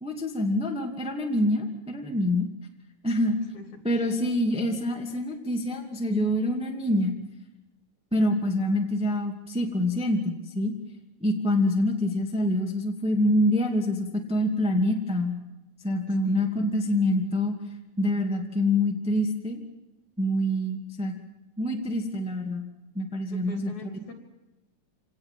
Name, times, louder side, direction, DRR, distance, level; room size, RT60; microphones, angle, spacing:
voice 1, 0.0-2.5 3.0-3.4 3.8-7.2 8.1-10.7 11.2-15.4 15.8-17.6 18.0-19.6 20.2-21.2 21.6-22.7 22.9-23.7, left 1 dB, ahead, 2 dB, 1.9 m, -26 dB
voice 2, 3.5-4.1 16.1-16.6 23.3-24.1, left 4 dB, 65° left, 5 dB, 4.5 m, -45 dB
26.0 x 18.5 x 7.6 m, 0.94 s
omnidirectional pair, 3.5 m